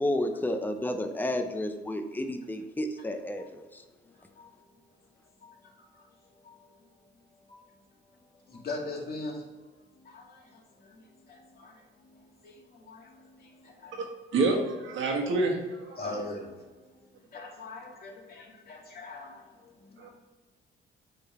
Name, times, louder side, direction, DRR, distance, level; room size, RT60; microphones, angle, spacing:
voice 1, 0.0-3.8, left 1 dB, 10° left, 6 dB, 0.7 m, -31 dB
voice 2, 4.0-4.6 5.4-6.8 7.5-7.6 8.1-14.0 16.0-16.7 17.3-20.1, left 2 dB, 50° left, -2 dB, 2.3 m, -43 dB
voice 3, 14.3-16.0 20.0-20.1, right 3 dB, 75° right, 0 dB, 1.7 m, -27 dB
8.1 x 3.9 x 4.3 m, 1.2 s
cardioid pair, 90°, 20 cm